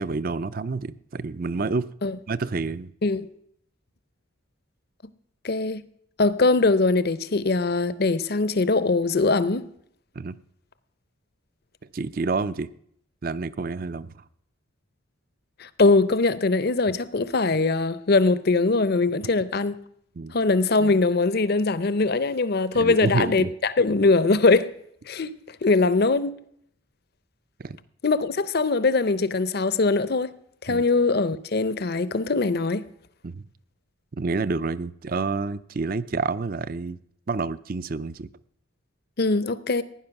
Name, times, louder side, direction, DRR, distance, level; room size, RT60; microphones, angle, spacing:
voice 1, 0.0-1.9 2.3-2.9 10.2-10.4 11.9-12.7 13.2-14.1 20.2-20.4 22.7-23.5 27.6-27.8 30.7-30.8 33.2-33.4 34.1-37.0 37.3-38.3, right 4 dB, 45° right, 0.5 m, -28 dB
voice 2, 5.4-5.8 6.2-9.7 15.6-19.8 20.3-24.7 25.1-25.3 25.6-26.3 28.0-30.3 30.6-32.8 39.2-39.8, left 3 dB, 50° left, 0.6 m, -22 dB
16.0 x 10.0 x 5.9 m
head